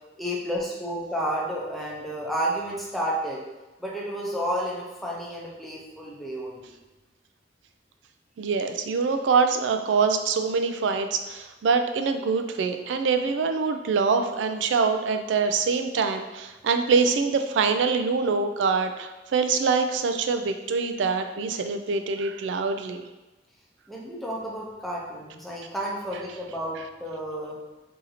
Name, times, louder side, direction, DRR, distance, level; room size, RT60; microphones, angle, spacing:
voice 1, 0.2-3.4 3.8-6.8 23.9-27.6, equal, ahead, -4 dB, 0.6 m, -31 dB
voice 2, 8.4-23.0, right 5 dB, 90° right, 7 dB, 0.3 m, -24 dB
2.8 x 2.6 x 4.0 m, 1.1 s
head